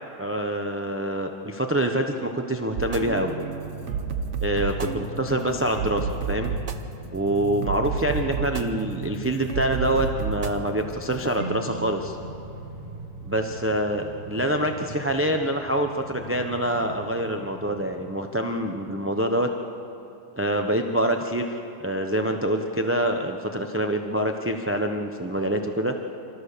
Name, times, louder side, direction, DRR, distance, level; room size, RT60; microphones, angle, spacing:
voice 1, 0.2-3.3 4.4-6.5 7.1-12.2 13.3-19.5 20.4-21.5 21.8-25.9, right 1 dB, 15° right, 4 dB, 0.5 m, -26 dB
Train, 2.7-17.8, left 1 dB, 65° left, 3.7 m, -43 dB
sound 1, 2.8-15.3, right 6 dB, 50° right, 1.1 m, -32 dB
28.0 x 14.0 x 6.7 m, 2.7 s
omnidirectional pair, 1.8 m